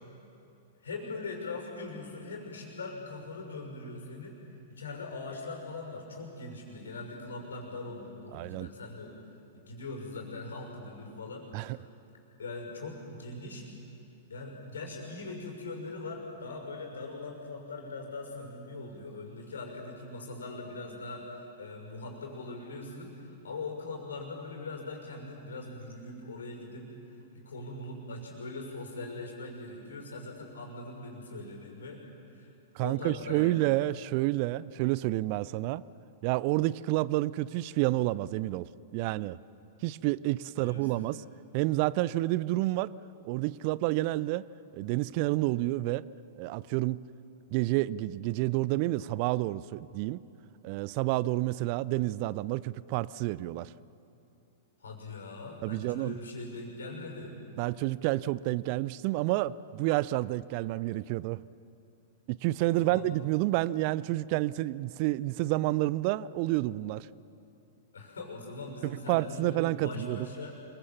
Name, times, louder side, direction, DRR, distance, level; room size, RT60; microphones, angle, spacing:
voice 1, 0.8-4.4 4.7-9.1 9.5-11.8 12.4-13.7 14.3-26.9 27.3-32.0 32.3-32.5 32.8-33.7 40.6-41.1 54.8-57.4 62.6-63.0 67.9-70.8, left 3 dB, 70° left, 6.2 m, -41 dB
voice 2, 8.3-8.7 11.5-11.8 32.7-35.8 36.2-39.4 39.8-41.2 41.5-42.9 43.2-44.5 44.7-46.0 46.4-47.0 47.5-50.2 50.6-53.7 55.6-56.2 57.6-61.4 62.3-67.1 68.8-70.3, right 17 dB, 45° right, 0.5 m, -29 dB
27.0 x 23.5 x 7.2 m
figure-of-eight pair, 100°, 0 cm